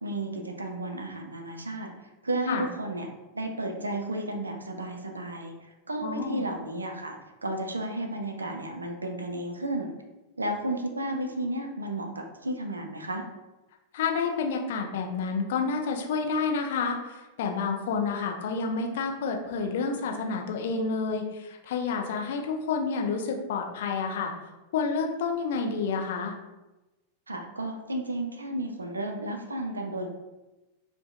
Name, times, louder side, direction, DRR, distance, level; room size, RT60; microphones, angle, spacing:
voice 1, 0.0-1.9 2.2-3.1 3.3-9.9 10.4-13.2 27.3-30.1, right 1 dB, 80° right, 3 dB, 0.3 m, -33 dB
voice 2, 6.0-6.4 13.9-24.3 24.7-26.3, left 5 dB, 55° left, 2 dB, 0.3 m, -29 dB
2.6 x 2.1 x 2.3 m, 1.1 s
figure-of-eight pair, 90°, 0 cm